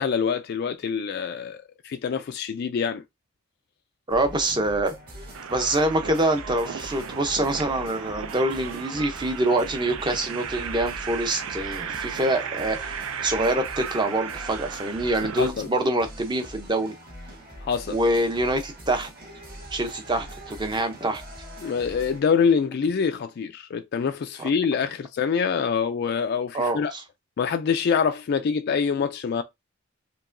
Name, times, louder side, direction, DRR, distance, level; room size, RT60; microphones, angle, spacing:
voice 1, 0.0-3.0 15.4-15.7 17.6-18.0 21.6-26.9 27.4-29.4, left 6 dB, 50° left, 0.3 m, -25 dB
voice 2, 4.1-4.9 5.5-16.9 17.9-19.1 19.7-21.2 24.4-24.5 26.5-27.0, right 1 dB, 20° right, 0.6 m, -25 dB
sound 1, 4.1-22.2, equal, 50° right, 1.9 m, -42 dB
sound 2, 5.3-15.5, right 7 dB, 80° right, 0.5 m, -35 dB
4.6 x 2.8 x 2.5 m
head